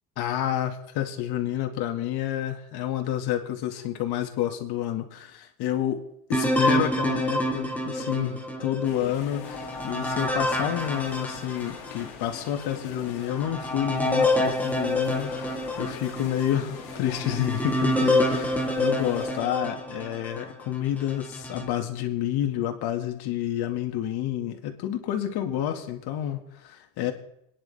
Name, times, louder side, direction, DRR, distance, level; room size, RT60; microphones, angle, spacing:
voice 1, 0.2-6.0 6.3-27.1, left 11 dB, 55° left, 5 dB, 2.3 m, -29 dB
sound 1, 6.3-12.1 12.6-12.7 13.3-20.5 21.1-21.7, left 1 dB, 5° left, 1.8 m, -27 dB
sound 2, 8.8-19.4, left 8 dB, 75° left, 2.6 m, -43 dB
27.0 x 10.5 x 3.6 m, 0.77 s
supercardioid pair, 105°, 46 cm